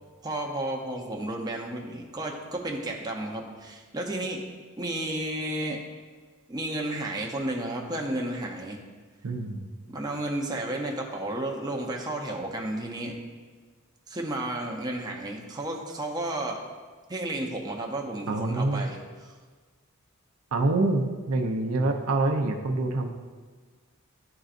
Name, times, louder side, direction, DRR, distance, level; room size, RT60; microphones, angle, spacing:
voice 1, 0.2-4.4 4.8-5.8 6.5-8.8 9.9-13.2 14.1-16.6 17.1-19.0 19.2-19.3, right 1 dB, 20° right, 0 dB, 0.6 m, -32 dB
voice 2, 9.2-9.7 18.3-18.9 20.5-23.1, right 2 dB, 80° right, 4 dB, 0.6 m, -26 dB
11.0 x 3.8 x 2.5 m, 1.4 s
head